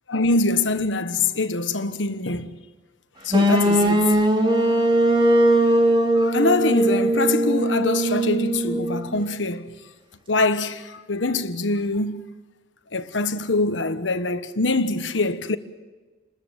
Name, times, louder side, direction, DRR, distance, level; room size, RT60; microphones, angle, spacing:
voice 1, 0.1-2.6 3.2-4.1 6.1-9.7 10.3-12.2 12.9-15.6, left 3 dB, 90° left, 1.3 m, -24 dB
sound 1, 3.3-9.2, right 1 dB, 25° right, 2.8 m, -20 dB
29.5 x 13.5 x 9.0 m
head